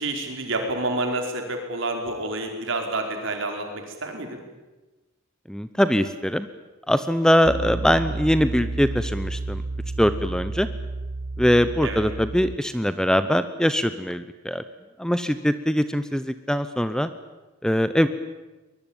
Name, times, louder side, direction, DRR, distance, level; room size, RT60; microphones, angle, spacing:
voice 1, 0.0-4.4 11.8-12.0, right 2 dB, 65° right, 3 dB, 4.9 m, -28 dB
voice 2, 5.5-6.5 6.9-9.6 10.0-10.7 11.4-14.6 15.0-17.1 17.6-18.1, equal, 5° left, 12 dB, 0.8 m, -22 dB
Piano, 7.4-12.6, right 2 dB, 40° right, 0.8 m, -31 dB
23.0 x 21.5 x 9.0 m, 1.2 s
head